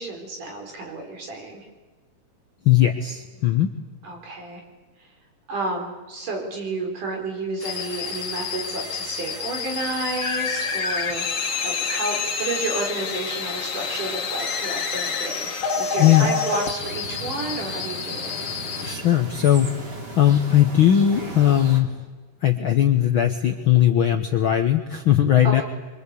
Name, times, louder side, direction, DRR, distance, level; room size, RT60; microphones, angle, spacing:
voice 1, 0.0-1.7 4.0-4.6 5.5-11.3 11.6-15.5 15.8-18.4 25.4-25.6, right 2 dB, 75° right, 2 dB, 5.9 m, -31 dB
voice 2, 2.6-3.7 16.0-16.3 18.8-22.0 22.4-25.6, left 11 dB, 65° left, 6 dB, 1.3 m, -19 dB
sound 1, 7.6-19.0, left 5 dB, 45° left, 2.4 m, -28 dB
sound 2, 16.8-21.8, right 2 dB, 30° right, 3.2 m, -36 dB
24.5 x 24.5 x 8.4 m, 1.3 s
omnidirectional pair, 3.7 m